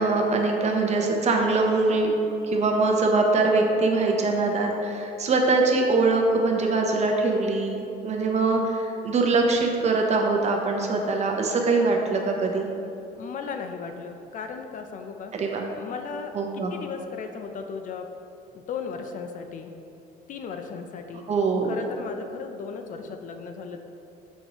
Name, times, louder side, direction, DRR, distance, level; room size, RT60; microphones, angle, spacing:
voice 1, 0.0-2.1 2.5-12.7 15.4-15.6 16.3-16.7 21.3-21.8, right 3 dB, 40° right, 2 dB, 0.8 m, -23 dB
voice 2, 13.1-15.3 15.7-18.1 18.5-19.8 20.3-21.2 21.6-23.8, left 5 dB, 50° left, 5 dB, 0.4 m, -36 dB
6.2 x 5.2 x 3.0 m, 2.7 s
cardioid pair, 110°, 17 cm